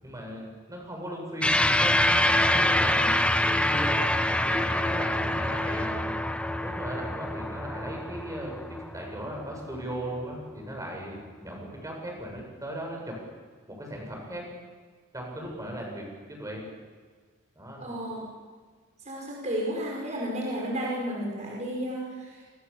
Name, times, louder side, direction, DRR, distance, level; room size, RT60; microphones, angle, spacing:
voice 1, 0.0-3.2 3.5-4.1 4.5-6.1 6.6-13.2 13.7-14.5 15.1-16.7 17.5-18.0, right 1 dB, 15° right, 0 dB, 7.7 m, -37 dB
sound 1, 1.4-10.1, left 1 dB, 5° left, 1.1 m, -26 dB
voice 2, 17.8-18.2 19.0-22.5, equal, 35° right, -3 dB, 5.5 m, -32 dB
29.0 x 24.5 x 7.3 m, 1.5 s
head